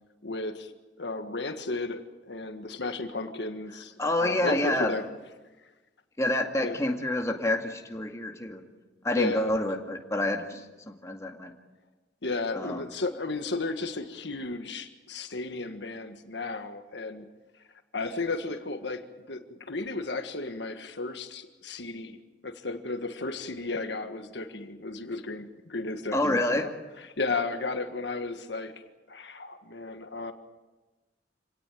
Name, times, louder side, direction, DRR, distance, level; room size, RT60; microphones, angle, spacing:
voice 1, 0.2-0.7 1.0-5.1 6.6-6.8 9.2-9.5 12.2-17.3 17.9-22.2 22.4-28.8 29.1-30.3, left 3 dB, 70° left, 7 dB, 1.6 m, -34 dB
voice 2, 4.0-4.9 6.2-8.6 9.0-10.6 11.0-11.5 12.6-12.8 26.1-26.7, left 1 dB, 15° left, 3 dB, 2.1 m, -27 dB
27.0 x 18.0 x 9.1 m, 1.2 s
head